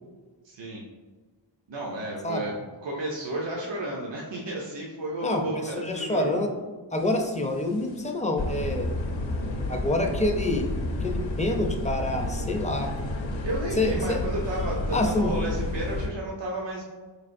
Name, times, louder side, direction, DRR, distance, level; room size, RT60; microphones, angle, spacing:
voice 1, 0.4-0.9 1.7-6.4 13.4-16.8, right 1 dB, 70° right, -3 dB, 0.7 m, -32 dB
voice 2, 5.2-6.5 6.9-8.9 9.7-10.7 11.0-12.9 13.8-14.2 14.9-15.3, left 1 dB, 15° left, 3 dB, 0.5 m, -27 dB
sound 1, 7.1-7.5 7.9-8.0 8.4-16.1, left 2 dB, 80° left, 0.6 m, -31 dB
4.2 x 3.3 x 2.5 m, 1.3 s
wide cardioid pair, 55°, 45 cm